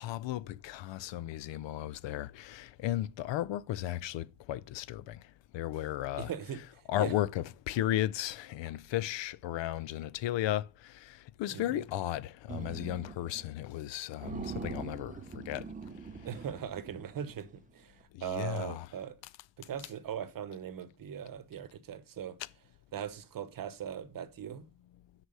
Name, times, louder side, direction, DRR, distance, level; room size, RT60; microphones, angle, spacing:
voice 1, 0.0-15.7 16.0-16.3 18.1-18.9 22.4-22.5, left 13 dB, 65° left, 0.5 m, -35 dB
voice 2, 6.2-7.1 11.5-11.8 16.2-17.5 17.7-19.1 19.6-22.4 22.9-24.7, right 9 dB, 45° right, 0.9 m, -40 dB
sound 1, 12.5-13.5 13.8-13.9 14.2-17.6, right 5 dB, 15° right, 0.5 m, -43 dB
9.9 x 4.8 x 5.4 m
cardioid pair, 155°, 48 cm